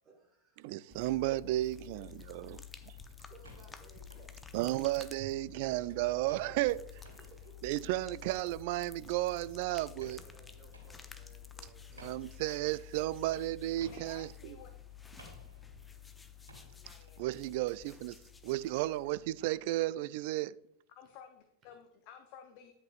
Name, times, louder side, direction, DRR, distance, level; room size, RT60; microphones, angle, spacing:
voice 1, 0.0-0.7 1.9-2.7 3.3-4.4 5.7-5.8 6.7-6.8 7.1-7.5 10.0-11.9 21.7-21.8, right 4 dB, 30° right, 1.6 m, -60 dB
voice 2, 0.6-2.6 4.5-6.8 7.6-10.2 12.0-14.6 17.2-18.2 18.4-20.6, right 16 dB, 50° right, 0.3 m, -33 dB
sound 1, 0.9-19.8, left 8 dB, 10° left, 0.7 m, -52 dB
sound 2, 2.7-5.2 5.6-16.8, right 1 dB, 75° right, 3.1 m, -59 dB
voice 3, 13.8-14.7 16.8-17.3 20.9-22.7, left 8 dB, 45° left, 0.7 m, -54 dB
10.0 x 8.5 x 2.5 m
figure-of-eight pair, 90°, 0 cm